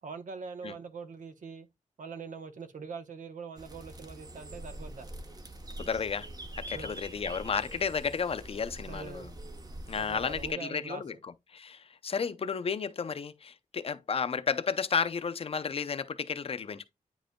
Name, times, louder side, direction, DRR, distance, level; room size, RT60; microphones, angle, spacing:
voice 1, 0.0-1.7 2.0-5.1 6.7-6.9 8.9-9.3 10.0-11.0, right 5 dB, 70° right, 1.0 m, -43 dB
sound 1, 3.6-10.5, right 1 dB, 30° right, 0.9 m, -44 dB
voice 2, 5.8-6.3 6.6-9.3 9.9-11.1 11.5-16.9, left 6 dB, 45° left, 0.6 m, -32 dB
9.3 x 5.1 x 2.2 m
wide cardioid pair, 110°, 14 cm